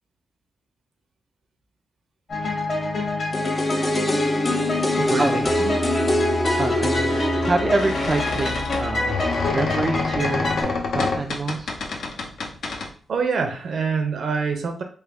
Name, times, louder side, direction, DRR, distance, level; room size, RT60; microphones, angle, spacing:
sound 1, 2.3-10.6, left 1 dB, 50° left, 1.2 m, -26 dB
sound 2, 3.3-9.2 9.5-9.6, left 1 dB, 25° left, 0.5 m, -25 dB
voice 1, 5.0-5.8 13.1-14.8, right 5 dB, 70° right, 4 dB, 0.6 m, -26 dB
sound 3, 5.2-5.3 6.8-12.9, left 4 dB, 75° left, 0.6 m, -29 dB
voice 2, 6.6-9.1 9.5-11.7, right 3 dB, 30° right, 4 dB, 0.3 m, -26 dB
3.3 x 2.2 x 3.5 m, 0.43 s
cardioid pair, 95°, 0 cm